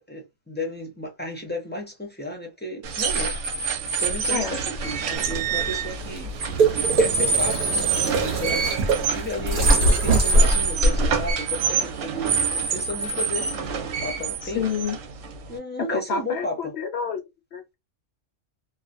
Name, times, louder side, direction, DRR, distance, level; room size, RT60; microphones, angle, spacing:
voice 1, 0.0-3.4 4.0-6.3 7.0-7.7 8.2-9.7 10.0-14.7 15.5-16.7, left 1 dB, 15° left, 0.4 m, -33 dB
sound 1, 2.8-15.6, right 5 dB, 70° right, 0.9 m, -26 dB
sound 2, 5.1-11.3, right 2 dB, 50° right, 0.8 m, -23 dB
voice 2, 14.4-15.0 15.9-17.2 17.5-17.7, left 7 dB, 65° left, 0.8 m, -28 dB
2.4 x 2.1 x 2.4 m
omnidirectional pair, 1.4 m